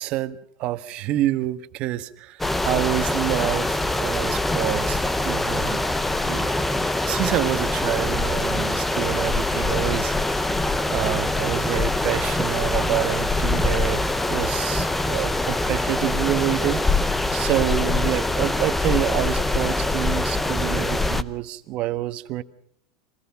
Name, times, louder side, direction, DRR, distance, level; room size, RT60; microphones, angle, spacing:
voice 1, 0.0-5.9 6.2-6.7 7.1-10.5 10.9-22.4, right 15 dB, 40° right, 11 dB, 1.2 m, -27 dB
sound 1, 2.4-21.2, left 2 dB, 5° left, 0.7 m, -24 dB
26.0 x 18.5 x 5.8 m, 0.66 s
supercardioid pair, 150°, 3 cm